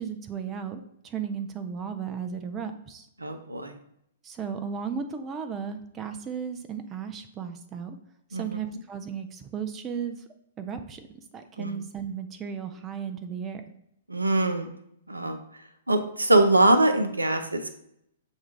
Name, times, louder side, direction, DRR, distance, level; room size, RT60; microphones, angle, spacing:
voice 1, 0.0-3.1 4.2-8.0 8.3-10.2 10.6-11.1 11.3-13.6, right 7 dB, 20° right, 8 dB, 0.4 m, -35 dB
voice 2, 3.2-3.8 8.3-8.4 11.6-11.7 14.1-14.7 15.1-15.4 15.9-17.7, right 2 dB, 80° right, 8 dB, 0.5 m, -23 dB
7.2 x 2.4 x 3.0 m, 0.75 s
figure-of-eight pair, 110°, 0 cm